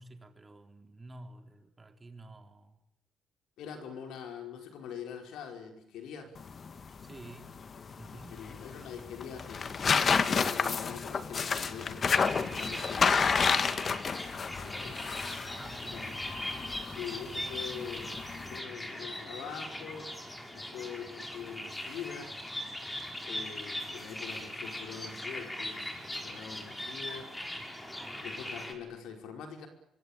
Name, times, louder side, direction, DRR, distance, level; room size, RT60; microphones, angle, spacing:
voice 1, 0.0-2.8 7.0-7.6 8.0-8.4 14.7-16.3, right 2 dB, 25° right, 5 dB, 3.9 m, -51 dB
voice 2, 3.6-6.3 8.1-13.4 14.6-15.0 15.9-16.1 16.8-18.1 18.5-20.1 20.5-22.3 23.2-27.7 28.2-29.7, left 7 dB, 85° left, 4 dB, 5.3 m, -44 dB
sound 1, 6.4-18.6, left 5 dB, 45° left, 1.7 m, -31 dB
sound 2, 12.1-28.7, left 1 dB, 15° left, 5.7 m, -40 dB
25.0 x 24.5 x 8.9 m, 0.79 s
cardioid pair, 90°, 0 cm